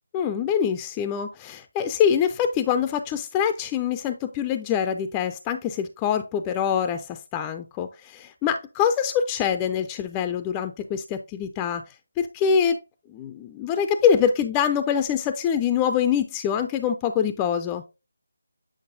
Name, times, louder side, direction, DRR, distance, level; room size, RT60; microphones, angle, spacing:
voice 1, 0.1-12.8 13.1-17.8, left 8 dB, 15° left, 0.4 m, -24 dB
8.5 x 5.0 x 2.6 m
figure-of-eight pair, 160°, 0 cm